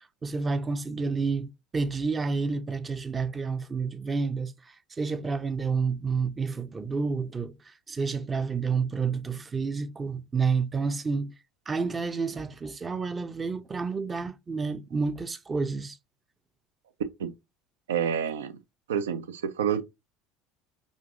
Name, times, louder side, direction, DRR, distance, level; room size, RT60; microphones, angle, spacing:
voice 1, 0.2-4.5 5.0-7.5 7.9-11.3 11.7-16.0, right 4 dB, 25° right, 0.5 m, -29 dB
voice 2, 17.9-18.5 18.9-19.8, right 8 dB, 75° right, 0.4 m, -28 dB
5.2 x 2.5 x 2.5 m
figure-of-eight pair, 65°, 0 cm